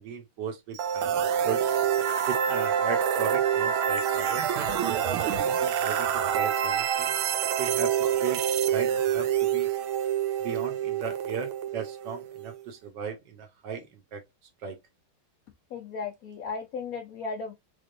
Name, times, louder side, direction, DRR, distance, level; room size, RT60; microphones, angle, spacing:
voice 1, 0.0-1.8 2.3-5.2 5.6-7.1 7.6-8.4 8.7-9.7 10.4-13.9 14.1-14.2 14.6-14.8, right 6 dB, 65° right, 1.3 m, -36 dB
sound 1, 0.8-12.6, right 9 dB, 90° right, 1.5 m, -27 dB
voice 2, 15.7-17.5, left 4 dB, 80° left, 0.7 m, -35 dB
3.5 x 3.4 x 2.4 m
omnidirectional pair, 2.3 m